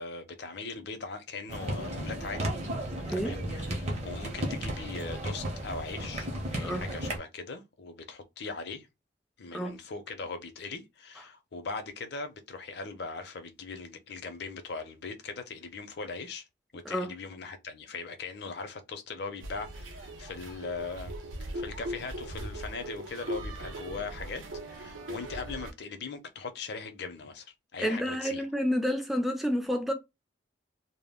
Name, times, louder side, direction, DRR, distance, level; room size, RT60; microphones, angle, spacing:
voice 1, 0.0-2.5 3.1-8.9 9.4-16.4 16.7-21.1 21.5-28.4, left 4 dB, 55° left, 0.5 m, -40 dB
sound 1, 1.5-7.2, right 1 dB, 35° right, 0.6 m, -34 dB
sound 2, 19.4-25.7, right 1 dB, 90° right, 0.6 m, -39 dB
voice 2, 27.8-29.9, equal, ahead, 0.3 m, -29 dB
2.2 x 2.0 x 3.4 m
head